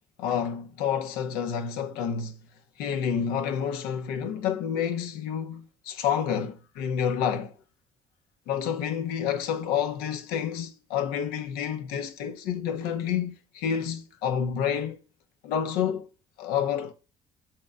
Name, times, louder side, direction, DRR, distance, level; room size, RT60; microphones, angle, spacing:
voice 1, 0.2-2.4 2.8-7.5 8.5-15.0 15.4-16.1 16.4-16.9, left 8 dB, 70° left, 1.0 m, -29 dB
7.6 x 4.4 x 3.6 m
figure-of-eight pair, 45°, 16 cm